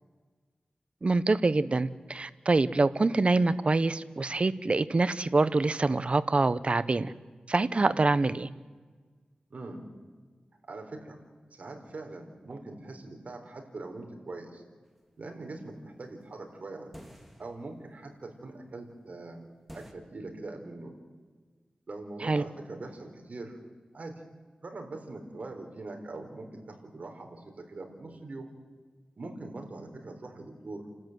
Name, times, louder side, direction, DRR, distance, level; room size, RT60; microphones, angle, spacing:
voice 1, 1.0-7.1 7.5-8.5 22.2-22.4, right 3 dB, 45° right, 15 dB, 0.9 m, -25 dB
voice 2, 9.5-9.8 10.6-11.2 11.5-14.6 15.2-16.9 17.4-20.9 21.9-23.6 23.9-24.1 24.6-28.5 29.2-30.8, right 2 dB, 60° right, 3 dB, 4.1 m, -42 dB
sound 1, 16.9-17.8 19.7-19.9, equal, ahead, 2.8 m, -48 dB
29.5 x 13.5 x 9.3 m, 1.4 s
wide cardioid pair, 75°, 3 cm